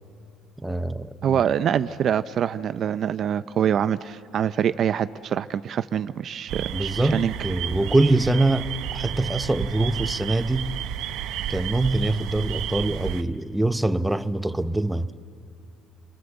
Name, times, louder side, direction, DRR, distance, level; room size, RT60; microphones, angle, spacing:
voice 1, 0.6-1.4 6.7-10.7 11.5-15.1, right 2 dB, 5° right, 0.8 m, -24 dB
voice 2, 1.2-7.3, right 9 dB, 50° right, 0.6 m, -25 dB
sound 1, 6.5-13.2, right 10 dB, 75° right, 0.9 m, -32 dB
29.5 x 22.0 x 7.9 m
cardioid pair, 115°, 0 cm